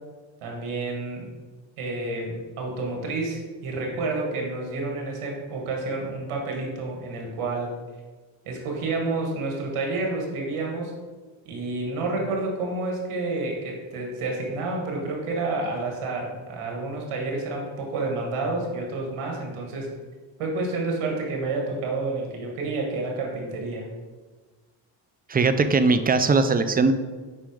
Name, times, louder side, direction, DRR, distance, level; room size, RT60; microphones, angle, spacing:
voice 1, 0.4-1.3 1.8-7.7 8.4-10.9 11.4-19.9 20.4-23.9, right 3 dB, 85° right, 0 dB, 1.7 m, -29 dB
voice 2, 25.3-26.9, right 4 dB, 20° right, 10 dB, 0.4 m, -20 dB
5.4 x 4.4 x 4.9 m, 1.3 s
cardioid pair, 75°, 49 cm